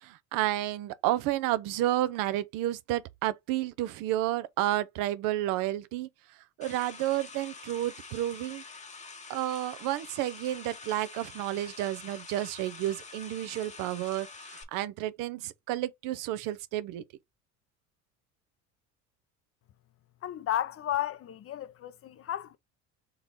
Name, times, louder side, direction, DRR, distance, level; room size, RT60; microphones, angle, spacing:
voice 1, 0.0-6.1 6.6-8.6 9.3-17.0, right 14 dB, 70° right, 0.6 m, -31 dB
sound 1, 6.6-14.6, left 4 dB, 20° left, 0.9 m, -46 dB
voice 2, 20.2-22.6, left 12 dB, 40° left, 0.6 m, -33 dB
3.8 x 3.0 x 3.9 m
supercardioid pair, 85°, 34 cm